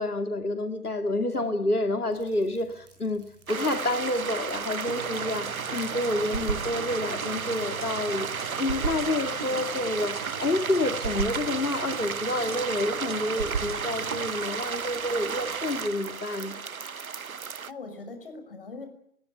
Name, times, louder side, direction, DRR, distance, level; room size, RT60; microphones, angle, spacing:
voice 1, 0.0-16.6, left 2 dB, 90° left, 2.5 m, -29 dB
sound 1, 2.1-15.9, right 2 dB, 10° right, 6.1 m, -55 dB
sound 2, 3.5-17.7, right 6 dB, 70° right, 0.9 m, -33 dB
sound 3, 4.9-14.3, right 5 dB, 35° right, 2.7 m, -37 dB
voice 2, 17.7-18.9, left 3 dB, 40° left, 6.0 m, -41 dB
24.0 x 20.5 x 8.0 m
figure-of-eight pair, 155°, 44 cm